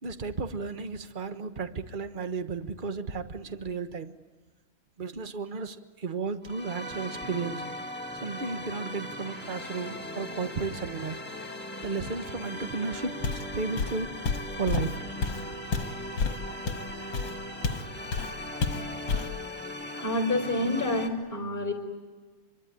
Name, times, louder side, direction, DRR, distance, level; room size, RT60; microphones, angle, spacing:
voice 1, 0.0-4.2 5.0-7.6 8.1-11.2 11.8-14.1 14.5-15.0, right 4 dB, 30° right, 9 dB, 1.1 m, -34 dB
sound 1, 6.4-21.1, left 1 dB, 5° left, 1.8 m, -39 dB
Walk footsteps, 13.2-13.5 13.8-17.9 18.1-18.3 18.6-19.4, left 4 dB, 70° left, 2.2 m, -30 dB
voice 2, 20.0-21.7, left 1 dB, 25° left, 5 dB, 4.8 m, -28 dB
25.0 x 24.0 x 9.8 m, 1.4 s
omnidirectional pair, 2.1 m